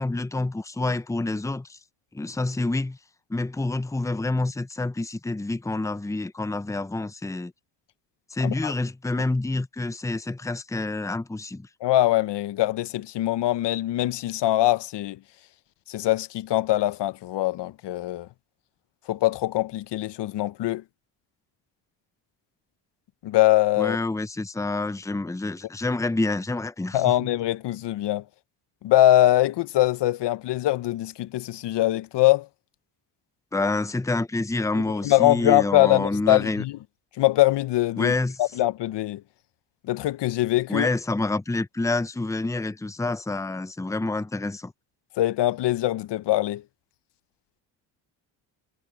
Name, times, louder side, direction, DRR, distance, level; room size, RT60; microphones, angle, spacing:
voice 1, 0.0-1.8 2.1-3.0 3.3-7.5 8.3-11.7 23.8-27.3 33.5-36.6 38.0-38.4 40.7-44.7, left 2 dB, 5° left, 0.8 m, -28 dB
voice 2, 11.8-15.2 15.9-18.3 19.1-20.8 23.2-24.0 26.9-28.2 28.8-32.5 35.0-36.7 37.2-38.1 38.4-39.2 39.9-40.9 45.2-46.6, left 15 dB, 65° left, 0.8 m, -22 dB
supercardioid pair, 70°, 45 cm